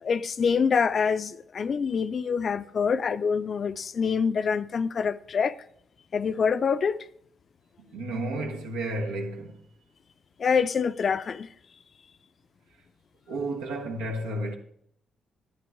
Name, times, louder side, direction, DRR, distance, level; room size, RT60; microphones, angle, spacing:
voice 1, 0.0-5.6 6.1-7.1 10.4-11.5, left 6 dB, 50° left, 0.5 m, -26 dB
voice 2, 7.8-9.6 13.3-14.6, right 1 dB, 85° right, 1.4 m, -32 dB
11.0 x 9.1 x 3.5 m
hypercardioid pair, 45°, 0 cm